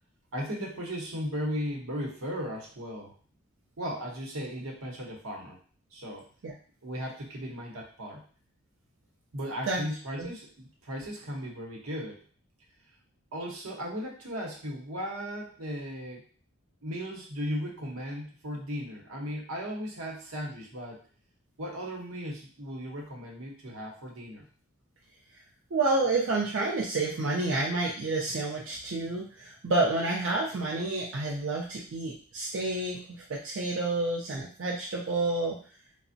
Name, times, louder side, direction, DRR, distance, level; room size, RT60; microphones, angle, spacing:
voice 1, 0.3-3.1 3.8-5.6 5.9-6.3 6.8-8.2 9.3-12.2 13.3-16.2 16.8-21.0 21.6-24.4, equal, 85° right, -2 dB, 0.8 m, -36 dB
voice 2, 25.7-35.6, right 2 dB, 60° right, -3 dB, 0.4 m, -29 dB
3.3 x 2.0 x 2.6 m, 0.42 s
head